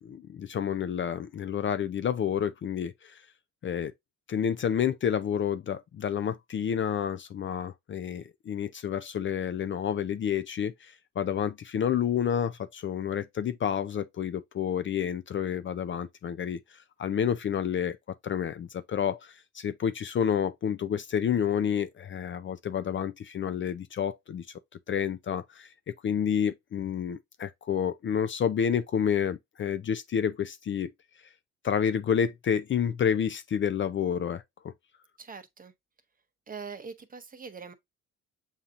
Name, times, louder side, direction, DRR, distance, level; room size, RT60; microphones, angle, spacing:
voice 1, 0.0-3.2 3.6-3.9 4.3-18.0 18.2-24.5 24.9-30.9 31.6-34.7, left 8 dB, 40° left, 0.4 m, -29 dB
voice 2, 35.2-35.7 36.5-37.7, right 5 dB, 30° right, 0.8 m, -42 dB
7.2 x 2.7 x 2.4 m
cardioid pair, 90°, 30 cm